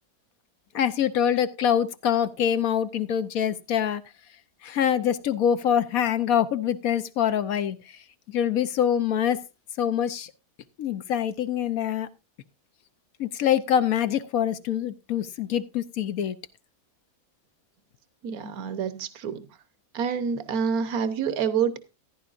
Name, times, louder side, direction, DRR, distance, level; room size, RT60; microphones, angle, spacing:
voice 1, 0.7-4.0 4.6-7.8 8.3-9.4 9.8-10.3 10.8-12.1 13.2-16.4, left 9 dB, 65° left, 1.1 m, -25 dB
voice 2, 18.2-19.5 19.9-21.8, right 7 dB, 65° right, 1.5 m, -27 dB
14.5 x 10.5 x 2.5 m
omnidirectional pair, 1.7 m